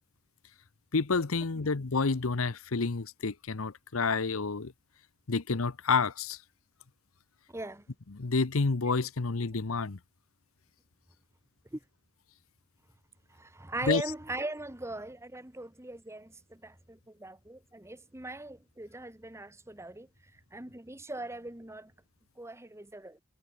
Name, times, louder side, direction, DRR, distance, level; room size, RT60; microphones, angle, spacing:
voice 1, 0.9-4.7 5.3-6.4 8.1-10.0 13.9-14.0, left 4 dB, 80° left, 0.9 m, -29 dB
voice 2, 7.5-7.9 11.7-11.8 13.3-21.9 22.4-23.2, right 2 dB, 15° right, 1.7 m, -40 dB
head